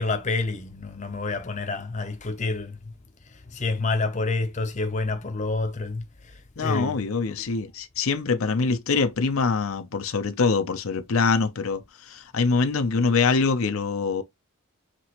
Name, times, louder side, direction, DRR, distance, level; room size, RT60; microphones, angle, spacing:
voice 1, 0.0-2.8 3.3-7.0 7.4-7.5 8.9-9.1, left 3 dB, 35° left, 0.7 m, -28 dB
voice 2, 6.6-14.2, left 4 dB, 70° left, 0.6 m, -24 dB
5.9 x 2.9 x 3.0 m
head